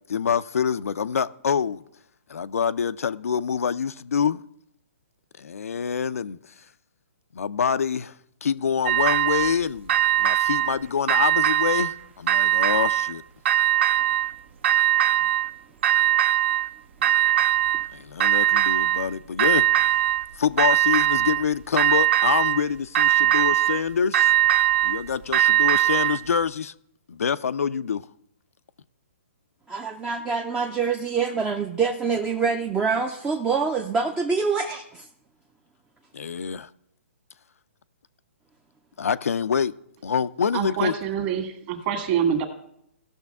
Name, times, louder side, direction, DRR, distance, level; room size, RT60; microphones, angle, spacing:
voice 1, 0.1-1.8 2.3-4.4 5.4-6.5 7.3-9.9 10.2-13.2 17.9-20.0 20.3-24.3 24.8-26.7 27.1-28.1 36.1-36.7 39.0-39.7 40.0-40.9, left 7 dB, 85° left, 0.5 m, -26 dB
sound 1, 8.9-9.6 9.9-10.7 11.1-11.9 12.3-13.1 13.5-14.3 14.6-15.5 15.8-16.7 17.0-17.9 18.2-19.1 19.4-20.2 20.6-21.4 21.8-22.6 22.9-23.8 24.1-26.2, right 13 dB, 55° right, 0.6 m, -21 dB
voice 2, 29.7-35.1, right 5 dB, 10° right, 0.5 m, -25 dB
voice 3, 40.5-42.5, right 8 dB, 35° right, 1.8 m, -26 dB
17.5 x 6.4 x 3.5 m
hypercardioid pair, 150°, 8 cm